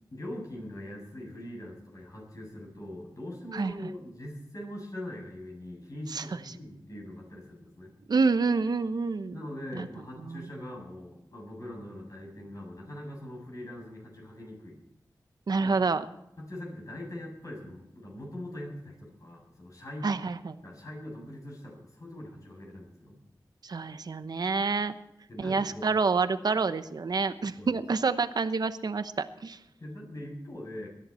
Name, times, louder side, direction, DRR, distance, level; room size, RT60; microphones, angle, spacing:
voice 1, 0.1-7.9 9.3-14.8 15.6-15.7 16.4-20.1 20.6-23.2 25.3-25.9 27.6-27.8 29.8-30.9, left 1 dB, 50° left, -2 dB, 7.3 m, -42 dB
voice 2, 3.5-3.9 6.1-6.2 8.1-9.4 9.7-9.9 10.2-10.5 15.5-16.0 20.0-20.6 23.6-24.9 25.4-29.6, right 4 dB, 70° right, 11 dB, 0.9 m, -28 dB
21.0 x 11.0 x 4.4 m, 0.81 s
wide cardioid pair, 60°, 7 cm